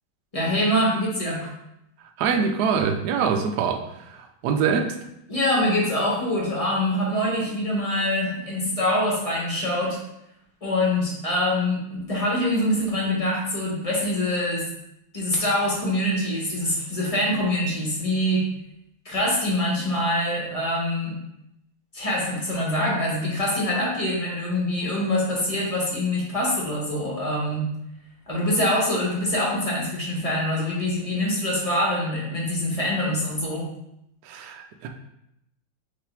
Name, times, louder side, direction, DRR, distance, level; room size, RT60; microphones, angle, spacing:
voice 1, 0.3-1.5 5.3-10.0 10.6-14.7 15.1-18.4 19.0-21.2 21.9-27.7 28.3-33.7, left 1 dB, 25° left, -4 dB, 0.8 m, -24 dB
voice 2, 2.2-3.8 4.1-4.9 34.2-34.9, right 6 dB, 90° right, 4 dB, 0.8 m, -24 dB
4.8 x 3.2 x 3.3 m, 0.81 s
omnidirectional pair, 2.3 m